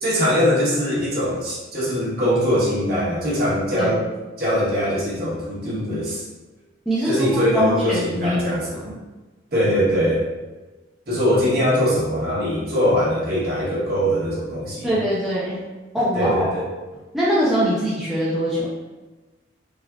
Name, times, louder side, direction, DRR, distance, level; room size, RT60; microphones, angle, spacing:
voice 1, 0.0-4.0 4.4-6.2 7.0-8.9 9.5-10.2 11.1-14.9 16.1-16.6, equal, 50° right, -7 dB, 1.0 m, -22 dB
voice 2, 6.9-8.9 14.8-15.6 15.9-16.6 17.1-18.7, equal, ahead, -9 dB, 0.4 m, -22 dB
3.4 x 2.3 x 2.2 m, 1.2 s
head